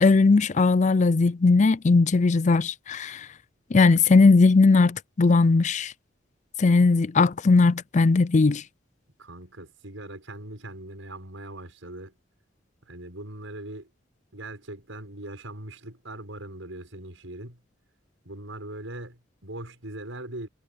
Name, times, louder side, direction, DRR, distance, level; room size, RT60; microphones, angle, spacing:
voice 1, 0.0-3.2 3.7-5.9 6.6-8.6, left 3 dB, 35° left, 0.5 m, -19 dB
voice 2, 9.2-12.2 12.9-13.9 14.3-17.6 18.2-20.5, right 1 dB, 80° right, 6.4 m, -40 dB
head